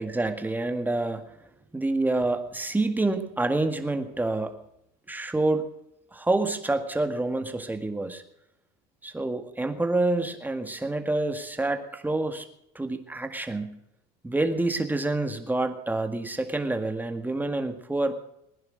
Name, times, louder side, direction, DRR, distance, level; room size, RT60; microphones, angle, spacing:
voice 1, 0.0-1.4 1.7-4.6 5.1-5.7 6.1-8.2 9.0-12.5 12.8-13.8 14.2-18.2, right 2 dB, 10° right, 6 dB, 1.9 m, -27 dB
20.0 x 10.5 x 6.4 m, 0.79 s
supercardioid pair, 100°, 21 cm